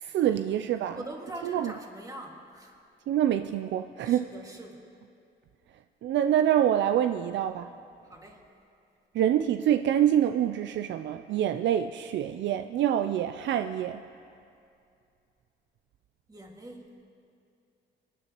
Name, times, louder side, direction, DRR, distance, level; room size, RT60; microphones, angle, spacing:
voice 1, 0.0-1.0 1.4-1.7 3.1-4.2 6.0-7.7 9.1-14.0, right 10 dB, 65° right, 9 dB, 0.4 m, -26 dB
voice 2, 0.9-2.7 4.0-4.9 8.0-8.5 16.3-16.9, right 1 dB, 20° right, 0 dB, 2.0 m, -43 dB
24.5 x 9.9 x 3.0 m, 2.5 s
cardioid pair, 90°, 20 cm